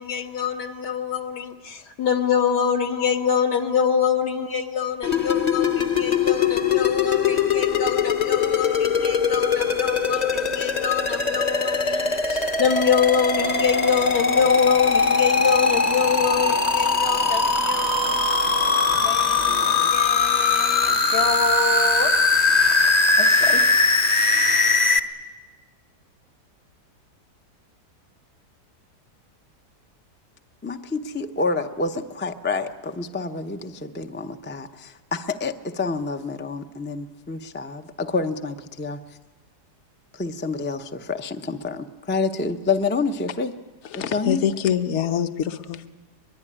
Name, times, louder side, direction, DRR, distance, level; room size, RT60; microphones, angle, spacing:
voice 1, 0.0-22.1 23.2-23.6, left 7 dB, 70° left, 4 dB, 2.0 m, -25 dB
sound 1, 5.0-25.0, left 4 dB, 30° left, 0.8 m, -21 dB
sound 2, 13.3-19.9, right 6 dB, 85° right, 1.9 m, -39 dB
sound 3, 16.3-17.1 17.5-18.3 18.6-19.2 19.5-21.8 22.0-22.1 22.5-23.6 24.1-24.2, right 5 dB, 35° right, 0.7 m, -36 dB
voice 2, 30.6-39.2 40.1-43.5 43.9-44.4, left 4 dB, 15° left, 6 dB, 0.3 m, -28 dB
voice 3, 43.9-45.9, left 9 dB, 50° left, 8 dB, 1.1 m, -25 dB
23.0 x 22.5 x 10.0 m, 1.3 s
omnidirectional pair, 1.8 m